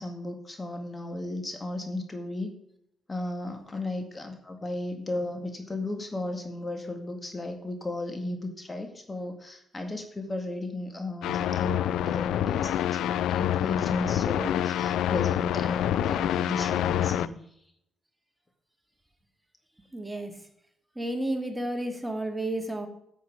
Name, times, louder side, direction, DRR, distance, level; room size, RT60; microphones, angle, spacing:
voice 1, 0.0-2.6 3.1-17.4, left 2 dB, 30° left, 5 dB, 1.9 m, -35 dB
sound 1, 11.2-17.3, left 11 dB, 75° left, 0.3 m, -27 dB
voice 2, 19.9-20.3 21.0-22.9, right 1 dB, 10° right, 4 dB, 2.3 m, -31 dB
9.5 x 8.3 x 5.0 m, 0.73 s
hypercardioid pair, 45°, 0 cm